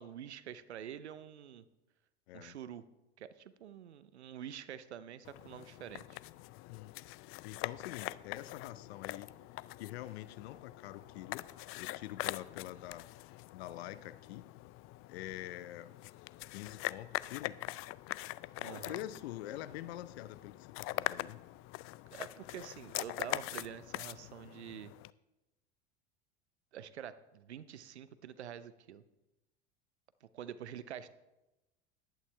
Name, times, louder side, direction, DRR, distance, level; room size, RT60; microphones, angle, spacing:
voice 1, 0.0-1.6 2.3-2.8 3.2-6.2 18.6-19.1 22.1-24.9 26.7-29.0 30.2-31.1, right 9 dB, 85° right, 14 dB, 0.8 m, -47 dB
sound 1, 5.2-25.1, left 18 dB, 45° left, 0.4 m, -43 dB
voice 2, 7.4-9.3 9.8-11.5 11.8-14.5 15.1-15.9 16.5-17.6 18.6-21.4, left 14 dB, 70° left, 16 dB, 0.7 m, -46 dB
15.0 x 11.0 x 3.4 m, 0.99 s
hypercardioid pair, 75°, 33 cm